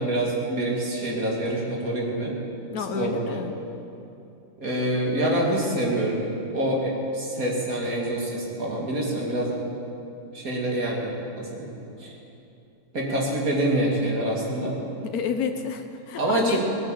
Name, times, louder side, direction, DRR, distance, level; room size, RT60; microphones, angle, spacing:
voice 1, 0.0-2.3 3.0-3.4 4.6-6.2 6.5-9.5 10.3-11.7 12.0-12.1 12.9-14.8 16.2-16.6, right 1 dB, 75° right, -2 dB, 2.9 m, -26 dB
voice 2, 2.7-3.5 15.0-16.6, left 6 dB, 85° left, 6 dB, 1.3 m, -29 dB
18.5 x 9.4 x 7.8 m, 2.7 s
omnidirectional pair, 1.5 m